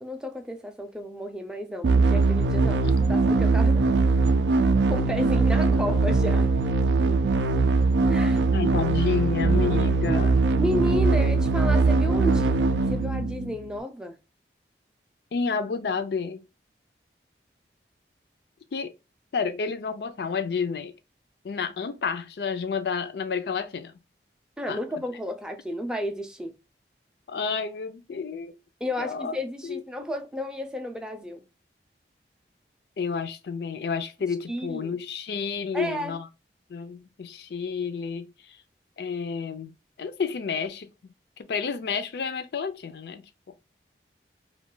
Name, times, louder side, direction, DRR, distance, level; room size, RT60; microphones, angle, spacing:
voice 1, 0.0-3.9 4.9-6.5 8.1-8.4 10.6-12.6 12.9-14.2 24.6-26.5 28.8-31.4 34.5-35.0 35.7-36.2, equal, 5° right, 0.4 m, -32 dB
sound 1, 1.8-13.8, right 3 dB, 85° right, 0.4 m, -21 dB
voice 2, 8.5-10.4 15.3-16.4 18.7-18.9 19.3-20.9 21.4-23.9 24.7-24.8 27.3-28.6 29.0-29.3 29.6-29.8 33.0-36.3 36.7-38.6 39.0-40.9 41.4-43.2, left 5 dB, 65° left, 0.4 m, -30 dB
2.3 x 2.2 x 3.7 m
head